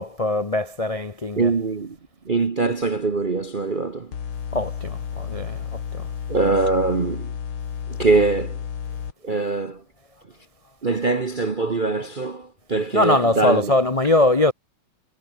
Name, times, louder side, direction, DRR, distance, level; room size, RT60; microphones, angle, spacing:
voice 1, 0.0-1.5 4.5-6.1 12.9-14.5, left 2 dB, 40° left, 0.5 m, -22 dB
voice 2, 1.4-2.0 2.2-4.1 6.3-7.3 7.9-8.6 9.2-9.8 10.8-13.7, right 3 dB, 40° right, 0.7 m, -22 dB
sound 1, 4.1-9.1, left 7 dB, 75° left, 2.8 m, -32 dB
omnidirectional pair, 2.3 m